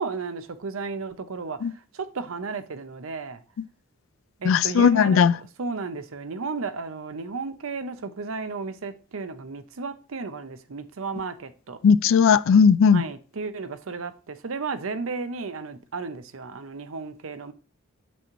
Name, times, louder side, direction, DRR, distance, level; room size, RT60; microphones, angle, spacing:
voice 1, 0.0-3.4 4.4-5.3 5.6-11.8 12.9-17.5, right 4 dB, 80° right, 0.7 m, -33 dB
voice 2, 4.5-5.3 11.8-13.0, left 6 dB, 70° left, 0.3 m, -17 dB
6.8 x 6.2 x 3.0 m
head